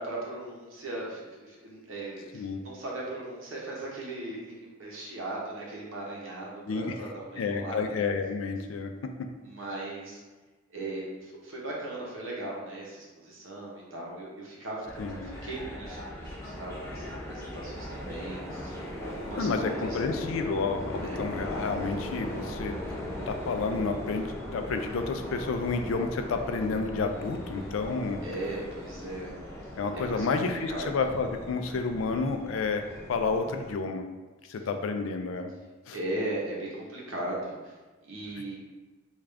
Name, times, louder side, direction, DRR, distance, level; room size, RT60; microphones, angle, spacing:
voice 1, 0.0-7.9 9.4-10.2 10.7-20.0 21.0-21.2 28.2-29.3 29.9-31.0 34.5-34.7 35.9-37.7 38.0-38.6, right 2 dB, 80° right, -4 dB, 0.9 m, -38 dB
voice 2, 7.4-8.9 15.0-15.2 19.4-22.8 23.3-28.2 29.8-32.8 33.1-34.0 34.5-35.5 35.9-36.0, left 4 dB, 85° left, 6 dB, 0.4 m, -30 dB
sound 1, 14.8-33.7, left 1 dB, 15° left, 0.6 m, -39 dB
3.5 x 2.4 x 3.3 m, 1.3 s
head